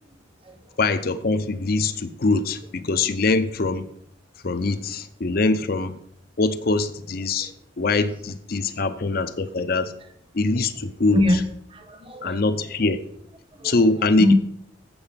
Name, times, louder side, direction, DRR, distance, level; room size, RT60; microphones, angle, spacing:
voice 1, 0.8-3.8 4.4-5.9 6.4-7.5 7.8-9.9 10.3-11.2 12.2-13.0 13.6-14.3, left 3 dB, 50° left, 10 dB, 0.6 m, -23 dB
voice 2, 11.1-12.4 13.5-13.8 14.2-14.3, left 1 dB, 30° right, 6 dB, 1.1 m, -24 dB
7.6 x 7.0 x 5.7 m, 0.68 s
head